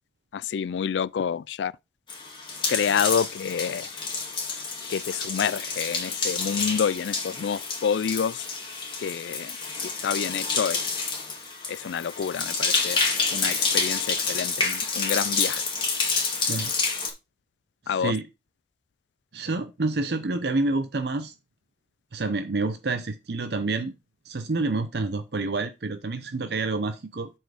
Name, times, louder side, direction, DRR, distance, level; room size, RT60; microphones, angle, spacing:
voice 1, 0.3-1.7 2.7-3.9 4.9-8.5 9.0-9.6 10.0-10.9 11.7-13.0 13.3-15.6 17.9-18.1, left 7 dB, 80° left, 0.3 m, -28 dB
sound 1, 2.1-17.1, left 4 dB, 25° left, 2.1 m, -28 dB
voice 2, 17.9-18.2 19.3-21.3 22.1-23.9 24.3-27.3, right 3 dB, 65° right, 0.6 m, -28 dB
7.9 x 4.5 x 4.9 m
head